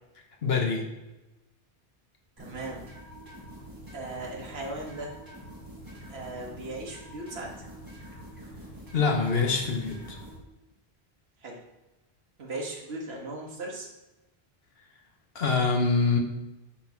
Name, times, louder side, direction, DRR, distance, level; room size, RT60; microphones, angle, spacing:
voice 1, 0.4-0.8 8.9-10.0 15.3-16.2, left 4 dB, 70° left, 1 dB, 1.3 m, -24 dB
sound 1, 2.4-10.4, equal, 20° right, 2.0 m, -46 dB
voice 2, 2.4-2.8 3.9-5.1 6.1-7.5 11.4-11.6 12.4-13.9, right 2 dB, 75° right, -2 dB, 1.6 m, -37 dB
8.4 x 3.6 x 6.0 m, 1.0 s
omnidirectional pair, 1.1 m